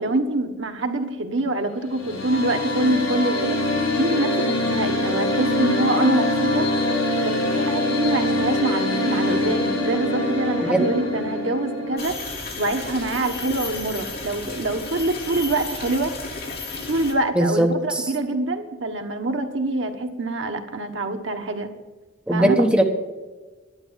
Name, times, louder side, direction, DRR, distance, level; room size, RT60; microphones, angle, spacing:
voice 1, 0.0-3.6 3.9-6.7 7.2-16.1 16.9-21.7 22.3-22.7, right 2 dB, 65° right, 5 dB, 1.3 m, -25 dB
sound 1, 1.8-12.0, left 1 dB, 80° left, 4.8 m, -24 dB
sound 2, 12.0-17.1, left 3 dB, 50° left, 2.9 m, -33 dB
voice 2, 17.3-18.1 22.3-22.8, right 1 dB, 5° right, 1 dB, 1.1 m, -19 dB
11.5 x 9.8 x 7.6 m, 1.3 s
head